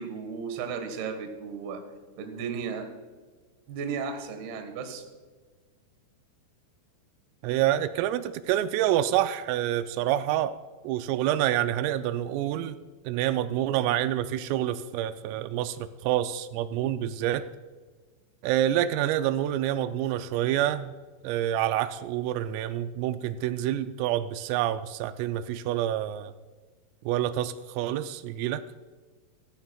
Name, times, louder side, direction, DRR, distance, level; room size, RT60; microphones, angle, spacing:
voice 1, 0.0-1.8 2.2-2.9 3.7-5.0, right 6 dB, 65° right, 6 dB, 2.9 m, -34 dB
voice 2, 7.4-10.5 10.8-12.8 13.1-17.4 18.4-20.9 21.2-26.3 27.1-28.6, right 12 dB, 90° right, 11 dB, 3.2 m, -27 dB
16.0 x 14.5 x 2.3 m, 1.4 s
omnidirectional pair, 5.8 m